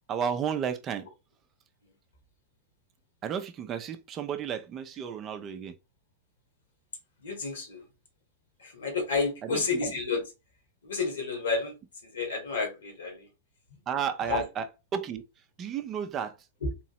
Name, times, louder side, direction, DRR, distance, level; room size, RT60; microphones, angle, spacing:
voice 1, 0.1-1.1 3.2-5.7 9.4-9.6 13.9-14.7 14.9-15.2 15.6-16.3, right 8 dB, 30° right, 0.5 m, -32 dB
voice 2, 7.2-7.9 8.6-10.2 10.8-11.8 12.0-13.3 13.7-13.8 14.3-14.4 16.6-16.7, left 4 dB, 70° left, 1.9 m, -30 dB
3.8 x 2.9 x 3.0 m
figure-of-eight pair, 100°, 0 cm